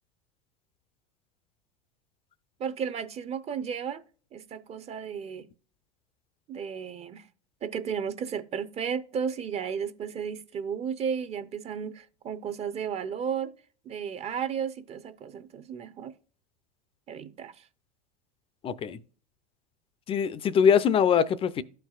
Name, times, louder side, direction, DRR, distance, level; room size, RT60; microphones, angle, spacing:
voice 1, 2.6-4.0 4.3-5.5 6.5-7.3 7.6-13.5 13.8-16.1 17.1-17.6 18.9-19.0, right 7 dB, 35° right, 0.7 m, -34 dB
voice 2, 18.6-19.0 20.1-21.6, left 7 dB, 30° left, 0.5 m, -23 dB
13.0 x 4.6 x 2.3 m
hypercardioid pair, 100°, 19 cm